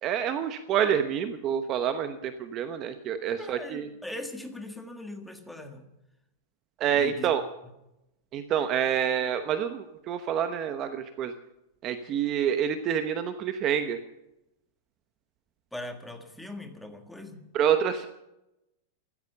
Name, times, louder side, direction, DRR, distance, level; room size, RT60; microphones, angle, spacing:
voice 1, 0.0-3.8 6.8-7.4 8.3-11.3 11.8-14.0 17.5-18.1, right 9 dB, 25° right, 9 dB, 0.9 m, -27 dB
voice 2, 3.4-5.9 6.9-7.3 15.7-17.4, left 1 dB, ahead, 5 dB, 1.6 m, -40 dB
14.5 x 14.0 x 6.7 m, 0.86 s
supercardioid pair, 170°, 0 cm